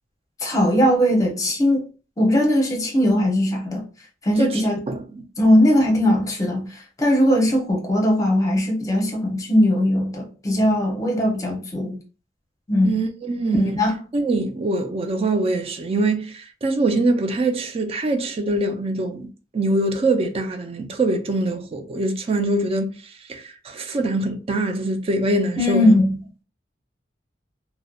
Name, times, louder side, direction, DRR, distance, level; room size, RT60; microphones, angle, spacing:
voice 1, 0.4-1.9 2.2-3.8 4.2-4.8 5.4-6.7 7.0-12.0 12.7-12.9 13.5-14.0 25.6-26.1, left 1 dB, 20° left, 0.7 m, -19 dB
voice 2, 4.9-5.2 12.8-13.7 14.1-19.3 19.5-22.9 23.3-26.0, right 2 dB, 30° right, 0.4 m, -23 dB
2.7 x 2.0 x 2.3 m
head